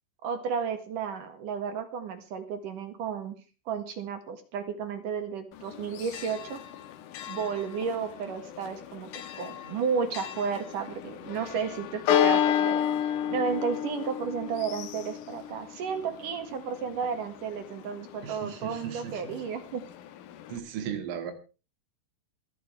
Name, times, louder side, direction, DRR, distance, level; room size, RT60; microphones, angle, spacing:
voice 1, 0.2-3.3 3.7-6.6 7.3-19.8, right 6 dB, 55° right, 9 dB, 2.6 m, -33 dB
Church bell, 5.5-20.6, left 10 dB, 85° left, 1.8 m, -33 dB
voice 2, 18.2-19.4 20.5-21.3, right 8 dB, 85° right, 8 dB, 4.7 m, -36 dB
25.5 x 10.0 x 3.3 m, 0.32 s
omnidirectional pair, 5.5 m